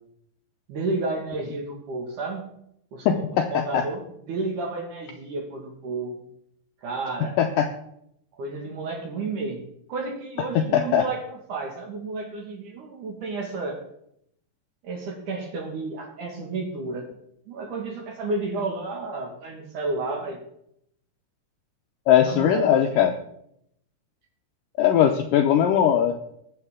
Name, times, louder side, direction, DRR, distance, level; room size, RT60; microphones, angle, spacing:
voice 1, 0.7-2.5 2.9-6.2 6.8-7.4 8.4-9.6 9.9-13.8 14.8-17.1 17.5-20.4 22.3-23.1, right 3 dB, 60° right, 2 dB, 2.8 m, -31 dB
voice 2, 3.1-3.9 7.4-7.7 10.6-11.1 22.1-23.1 24.8-26.1, left 9 dB, 85° left, 5 dB, 1.9 m, -20 dB
21.0 x 7.7 x 3.6 m, 0.75 s
omnidirectional pair, 4.6 m